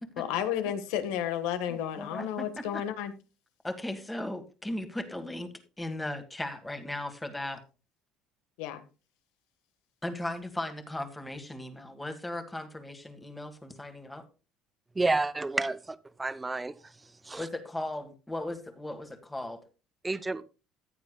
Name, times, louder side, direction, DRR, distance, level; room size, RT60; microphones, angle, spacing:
voice 1, 0.2-3.1 8.6-8.8, left 10 dB, 90° left, 1.4 m, -32 dB
voice 2, 1.7-2.8 3.6-5.5 5.8-7.6 10.0-14.2 17.4-19.6, left 1 dB, 10° left, 1.6 m, -37 dB
voice 3, 15.0-16.7 17.3-17.4 20.0-20.4, right 3 dB, 10° right, 0.6 m, -30 dB
14.5 x 9.5 x 2.3 m
cardioid pair, 135°, 0 cm